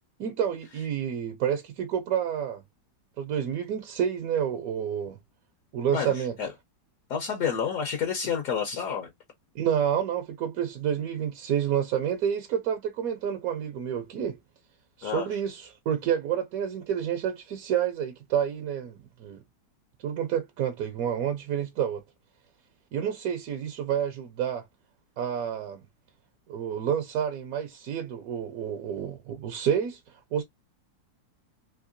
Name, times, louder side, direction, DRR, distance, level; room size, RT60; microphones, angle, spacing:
voice 1, 0.2-2.6 3.2-5.2 5.7-6.3 9.5-14.4 15.0-19.4 20.0-22.0 22.9-24.6 25.2-25.8 26.5-30.0 30.3-30.4, right 9 dB, 70° right, 0.9 m, -29 dB
voice 2, 5.9-6.5 7.1-9.1 15.0-15.3, left 7 dB, 60° left, 1.1 m, -29 dB
3.7 x 2.8 x 2.5 m
omnidirectional pair, 2.0 m